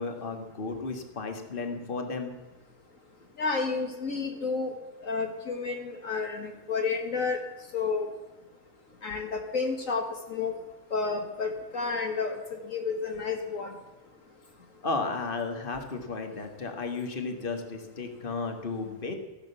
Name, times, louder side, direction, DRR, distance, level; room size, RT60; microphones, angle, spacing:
voice 1, 0.0-2.3 14.8-19.1, left 4 dB, 35° left, 5 dB, 1.9 m, -34 dB
voice 2, 3.4-4.7 5.0-7.4 7.7-8.1 9.0-10.5 10.9-13.7, left 4 dB, 60° left, 3 dB, 1.8 m, -31 dB
14.0 x 12.0 x 7.0 m, 1.2 s
omnidirectional pair, 1.6 m